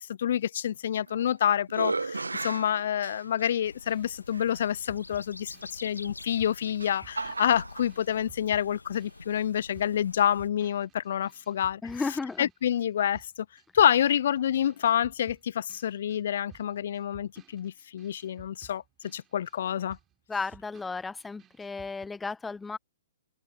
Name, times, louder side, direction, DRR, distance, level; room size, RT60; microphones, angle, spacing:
voice 1, 0.0-11.8 12.4-13.3 13.7-20.0, left 10 dB, 55° left, 0.7 m, -28 dB
sound 1, 0.9-1.3 1.7-3.6 4.3-4.4 6.2-7.9, right 3 dB, 80° right, 0.7 m, -35 dB
sound 2, 3.6-10.5, left 3 dB, 85° left, 2.4 m, -48 dB
sound 3, 3.8-12.9 13.1-22.1, right 10 dB, 20° right, 5.8 m, -57 dB
voice 2, 11.8-12.5 20.3-22.8, left 4 dB, 10° left, 0.3 m, -34 dB
open air
figure-of-eight pair, 120°, 0 cm